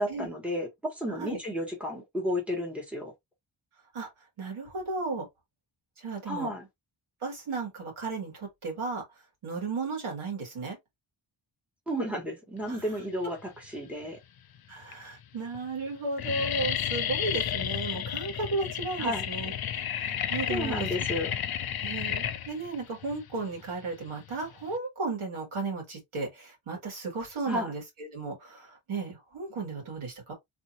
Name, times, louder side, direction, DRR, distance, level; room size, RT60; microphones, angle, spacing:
voice 1, 0.0-3.1 6.3-6.7 11.9-14.2 19.0-19.3 20.5-21.4 27.5-27.7, equal, 5° right, 1.3 m, -32 dB
voice 2, 1.1-1.4 3.9-4.1 4.4-5.3 6.0-6.5 7.2-9.0 9.4-10.8 12.7-12.8 14.7-19.5 19.8-20.8 21.8-30.3, right 3 dB, 85° right, 2.0 m, -34 dB
sound 1, 13.6-14.2 14.8-14.9 15.2-15.6 15.8-24.8, left 9 dB, 50° left, 0.5 m, -32 dB
3.3 x 2.7 x 2.9 m
wide cardioid pair, 145°, 48 cm